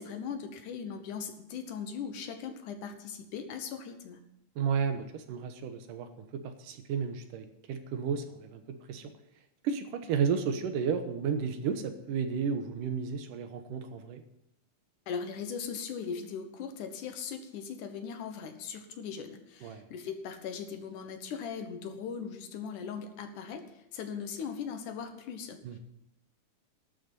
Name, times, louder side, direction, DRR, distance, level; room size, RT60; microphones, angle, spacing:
voice 1, 0.0-4.2 15.1-25.8, left 6 dB, 75° left, 7 dB, 2.7 m, -39 dB
voice 2, 4.6-9.1 9.6-14.2 19.6-19.9 25.6-25.8, right 6 dB, 85° right, 7 dB, 2.7 m, -33 dB
12.0 x 6.7 x 9.0 m, 0.83 s
omnidirectional pair, 3.7 m